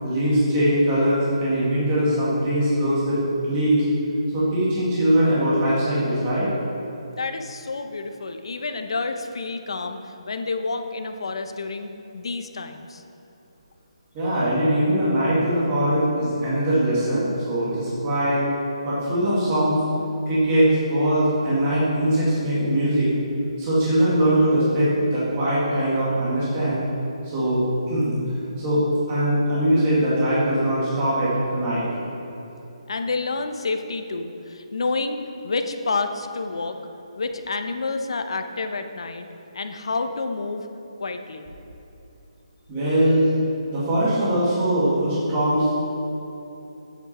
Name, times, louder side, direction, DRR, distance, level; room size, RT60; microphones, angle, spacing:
voice 1, 0.0-3.8 4.3-6.5 14.1-18.4 18.8-19.8 20.3-23.1 23.6-26.8 27.2-28.1 28.6-31.8 42.7-43.3 43.7-45.7, right 1 dB, 15° right, -10 dB, 2.0 m, -21 dB
voice 2, 7.2-13.0 32.9-36.8 37.2-39.3 39.5-40.7 41.0-41.5, left 3 dB, 55° left, 7 dB, 0.8 m, -29 dB
10.5 x 8.3 x 4.3 m, 3.0 s
hypercardioid pair, 175°, 3 cm